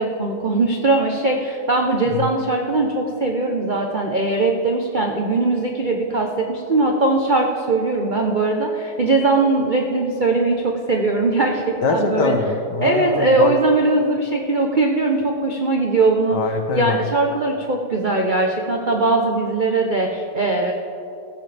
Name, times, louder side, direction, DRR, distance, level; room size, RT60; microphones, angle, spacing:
voice 1, 0.0-12.3 12.8-16.4 16.7-20.7, right 2 dB, 70° right, 1 dB, 0.4 m, -20 dB
voice 2, 11.8-13.5 16.3-17.0, left 3 dB, 60° left, 5 dB, 1.6 m, -23 dB
16.0 x 15.0 x 3.4 m, 2.7 s
omnidirectional pair, 2.3 m